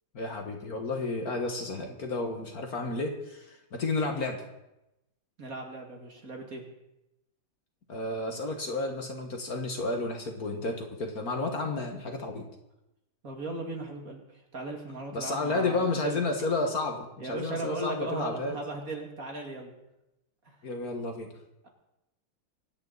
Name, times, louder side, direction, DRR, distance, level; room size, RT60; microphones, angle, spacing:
voice 1, 0.1-4.4 7.9-12.5 15.1-18.6 20.6-21.3, left 3 dB, 50° left, 3 dB, 2.0 m, -31 dB
voice 2, 5.4-6.6 13.2-16.2 17.2-19.8 20.5-20.6, right 2 dB, 45° right, 2 dB, 2.5 m, -37 dB
24.5 x 9.9 x 4.1 m, 0.90 s
omnidirectional pair, 2.2 m